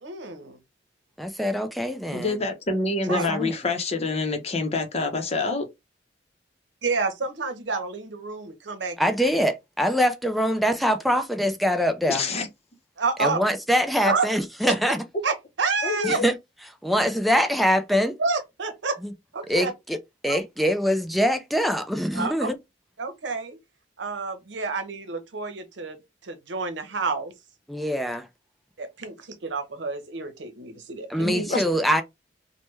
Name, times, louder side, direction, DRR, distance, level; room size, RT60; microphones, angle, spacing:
voice 1, 0.0-0.6 3.1-3.3 6.8-9.1 13.0-13.4 14.0-14.2 15.2-16.2 18.2-19.0 19.3-19.7 20.3-20.4 22.1-22.5 23.0-23.6 24.0-26.0 26.2-27.3 28.8-31.3, right 4 dB, 90° right, 0.8 m, -29 dB
voice 2, 1.2-2.4 3.1-3.5 9.0-12.3 13.2-15.0 16.0-16.3 16.8-18.2 19.0-19.1 19.5-20.0 20.2-22.6 27.7-28.3 31.1-32.0, equal, ahead, 0.3 m, -24 dB
voice 3, 2.1-5.7 12.1-12.5 15.8-16.2 31.2-31.6, left 3 dB, 35° left, 0.7 m, -26 dB
3.3 x 2.1 x 3.1 m
head